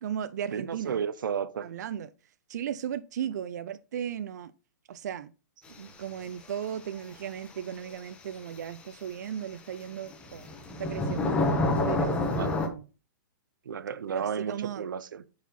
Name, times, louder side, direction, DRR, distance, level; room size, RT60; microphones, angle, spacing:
voice 1, 0.0-1.0 1.6-2.1 2.5-4.5 4.9-5.3 6.0-10.5 10.8-11.3 11.9-12.8 14.1-14.9, right 9 dB, 60° right, 0.5 m, -36 dB
voice 2, 0.5-1.7 5.8-5.9 12.4-12.5 13.7-15.2, right 7 dB, 90° right, 0.8 m, -33 dB
sound 1, 8.0-8.1 10.1-12.7, left 2 dB, 10° left, 1.0 m, -27 dB
9.4 x 4.7 x 4.1 m
hypercardioid pair, 165°, 10 cm